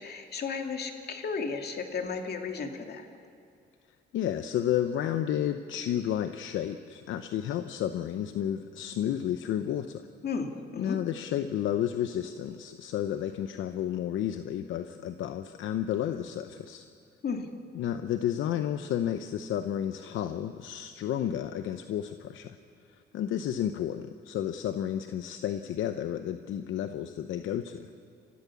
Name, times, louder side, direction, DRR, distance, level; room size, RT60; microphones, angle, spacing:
voice 1, 0.0-3.1 10.2-11.0 17.2-17.5, left 5 dB, 55° left, 4 dB, 2.4 m, -34 dB
voice 2, 4.1-10.1 10.8-16.9 17.7-22.6 23.1-27.9, left 10 dB, 80° left, 9 dB, 0.8 m, -31 dB
29.5 x 14.5 x 7.1 m, 2.3 s
cardioid pair, 90°, 20 cm